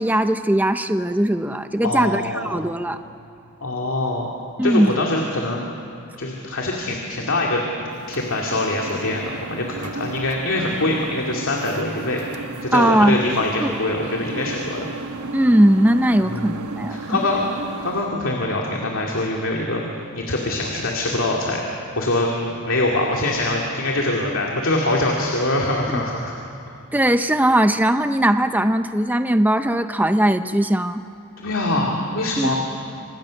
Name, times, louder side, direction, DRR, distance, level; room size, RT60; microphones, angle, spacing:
voice 1, 0.0-3.0 4.6-5.0 12.7-13.2 13.6-13.7 15.3-17.1 26.9-31.0 32.4-32.5, right 1 dB, 10° right, 9 dB, 0.6 m, -19 dB
voice 2, 1.8-2.6 3.6-4.3 4.6-5.6 6.2-12.2 12.6-14.9 16.3-17.5 17.8-19.8 20.1-21.6 22.0-26.3 31.4-32.6, left 2 dB, 60° left, -1 dB, 2.6 m, -24 dB
sound 1, 7.9-18.1, right 3 dB, 85° right, 1.2 m, -35 dB
28.5 x 26.5 x 6.5 m, 2.6 s
head